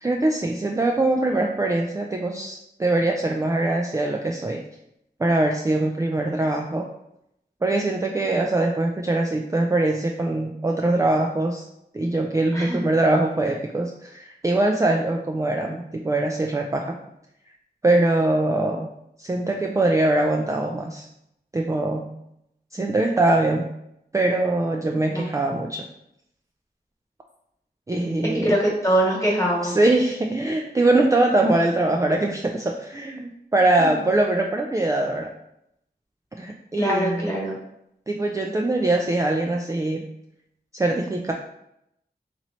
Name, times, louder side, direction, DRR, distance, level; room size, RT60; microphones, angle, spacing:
voice 1, 0.0-4.6 5.2-6.8 7.6-11.6 11.9-17.0 17.8-18.9 19.2-21.1 21.5-22.1 22.7-23.7 24.1-25.9 27.9-28.5 29.6-35.3 36.4-37.3 38.1-40.1 40.7-41.3, right 2 dB, 20° right, 1 dB, 0.3 m, -22 dB
voice 2, 28.4-29.8 33.8-33.9 36.8-37.6, right 1 dB, 15° left, -3 dB, 1.4 m, -23 dB
3.0 x 2.9 x 4.0 m, 0.79 s
wide cardioid pair, 55°, 17 cm